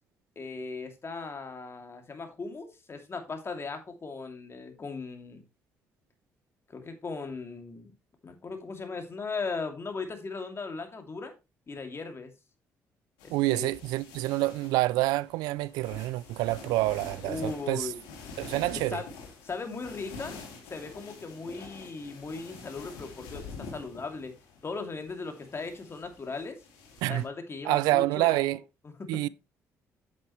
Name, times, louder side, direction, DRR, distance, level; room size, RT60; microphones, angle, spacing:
voice 1, 0.4-5.4 6.7-7.9 8.2-11.3 11.7-12.3 13.2-13.7 17.2-18.0 18.7-19.1 19.4-20.4 20.7-24.3 24.6-26.6 27.1-28.6 28.8-29.1, left 4 dB, 40° left, 2.6 m, -38 dB
sound 1, 13.2-27.2, left 4 dB, 90° left, 3.0 m, -47 dB
voice 2, 13.3-17.9 18.4-19.0 27.0-27.2 27.6-28.6 29.1-29.3, right 19 dB, 85° right, 0.4 m, -27 dB
8.6 x 8.1 x 3.1 m
supercardioid pair, 60°, 7 cm